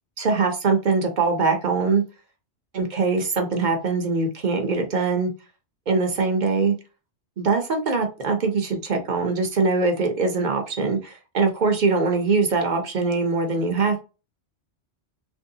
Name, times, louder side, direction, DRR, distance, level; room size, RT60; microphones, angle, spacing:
voice 1, 0.2-2.0 2.7-5.3 5.9-6.7 7.4-14.0, right 4 dB, 50° right, 4 dB, 0.7 m, -22 dB
3.0 x 2.6 x 2.7 m, 0.31 s
omnidirectional pair, 1.1 m